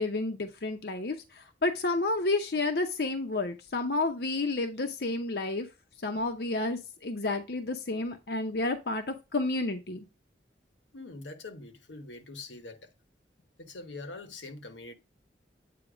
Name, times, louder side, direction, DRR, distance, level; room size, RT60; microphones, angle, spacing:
voice 1, 0.0-5.7 6.0-10.0, left 2 dB, 60° left, 0.7 m, -30 dB
voice 2, 10.9-12.9 13.6-14.9, left 3 dB, 90° left, 1.2 m, -44 dB
8.4 x 2.9 x 5.0 m
head